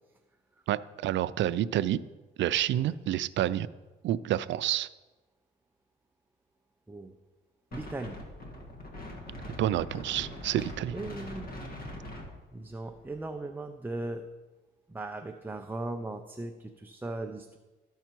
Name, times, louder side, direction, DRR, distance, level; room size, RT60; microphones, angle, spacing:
voice 1, 0.7-2.0 2.4-3.7 4.0-4.9 9.6-11.0, right 12 dB, 70° right, 15 dB, 0.4 m, -28 dB
Wind, 7.7-13.2, left 1 dB, 50° left, 1.9 m, -42 dB
voice 2, 7.7-8.2 10.9-11.7 12.5-14.2 14.9-17.6, right 2 dB, 10° right, 4 dB, 0.6 m, -38 dB
13.5 x 5.6 x 4.5 m, 1.2 s
cardioid pair, 90°, 20 cm